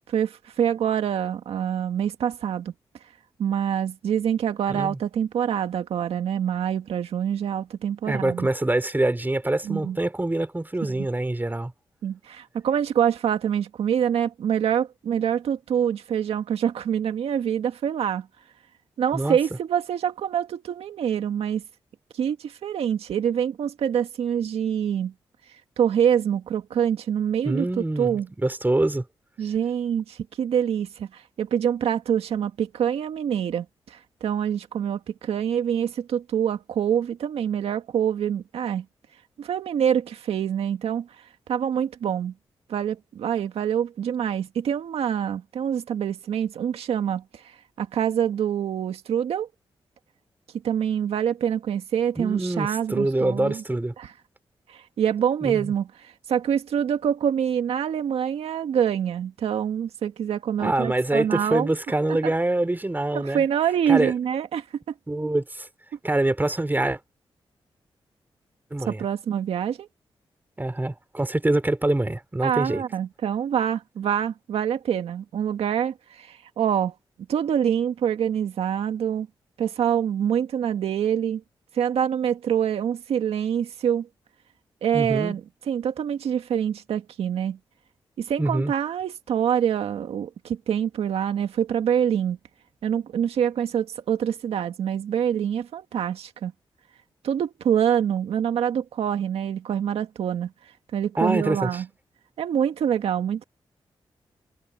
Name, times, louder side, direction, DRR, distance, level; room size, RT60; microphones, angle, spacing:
voice 1, 0.0-2.7 3.4-8.5 9.6-10.0 10.8-11.1 12.0-18.3 19.0-21.6 22.1-25.1 25.8-27.7 28.0-28.3 29.4-38.9 39.4-42.3 42.7-49.5 50.6-53.6 54.0-54.1 54.7-61.7 62.2-62.3 63.1-64.9 68.9-69.9 72.4-76.9 77.3-79.3 79.6-81.4 81.7-84.1 84.8-87.6 88.2-92.4 92.8-96.5 97.2-100.5 100.9-101.9 102.4-103.4, right 9 dB, 85° right, 2.0 m, -25 dB
voice 2, 8.0-11.7 19.1-19.4 27.5-29.1 52.2-53.9 55.4-55.7 60.6-63.4 63.9-64.1 65.1-65.7 66.0-67.0 68.7-69.0 70.6-72.8 84.9-85.4 88.4-88.7 101.2-101.8, right 2 dB, 20° right, 3.5 m, -25 dB
cardioid pair, 50°, 10 cm